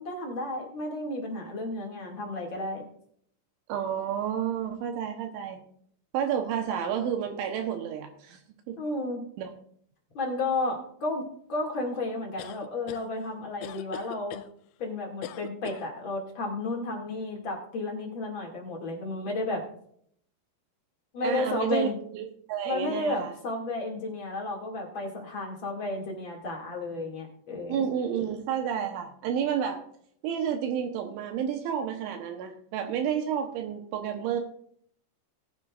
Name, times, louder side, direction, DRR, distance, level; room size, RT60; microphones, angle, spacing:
voice 1, 0.0-2.8 8.8-9.2 10.1-14.4 14.8-19.6 21.1-21.9 22.6-27.8, left 2 dB, 40° left, 0 dB, 1.8 m, -32 dB
voice 2, 3.7-5.6 6.1-8.4 8.7-8.8 9.4-9.5 21.2-23.3 27.7-29.8 30.2-34.4, right 8 dB, 80° right, 3 dB, 3.3 m, -30 dB
sound 1, 12.4-13.1 13.6-14.5 15.2-15.9, left 12 dB, 80° left, 2.9 m, -40 dB
19.5 x 9.6 x 2.5 m, 0.65 s
omnidirectional pair, 5.6 m